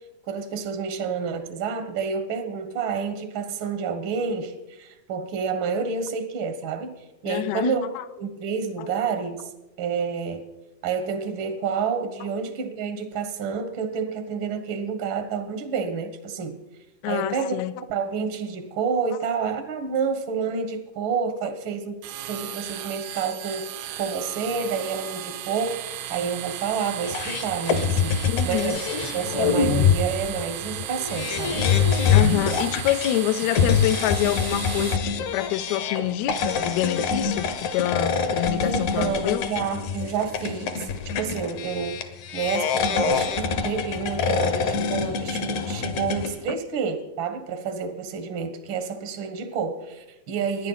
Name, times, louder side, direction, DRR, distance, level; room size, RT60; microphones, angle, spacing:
voice 1, 0.3-7.0 7.2-7.9 8.2-9.4 9.8-10.4 10.8-16.6 17.1-17.6 17.9-22.0 22.3-23.7 24.0-25.8 26.1-28.2 28.4-28.8 29.1-31.7 38.6-40.9 41.2-42.0 42.3-50.7, right 6 dB, 70° right, 1.2 m, -29 dB
voice 2, 7.3-8.0 8.8-8.9 12.2-12.3 17.0-17.7 28.3-28.8 32.1-39.5 46.5-46.6, left 13 dB, 85° left, 1.6 m, -27 dB
sound 1, 22.0-35.0, right 12 dB, 85° right, 2.4 m, -35 dB
sound 2, 27.0-46.4, left 6 dB, 65° left, 2.2 m, -25 dB
25.5 x 10.5 x 4.0 m
omnidirectional pair, 4.0 m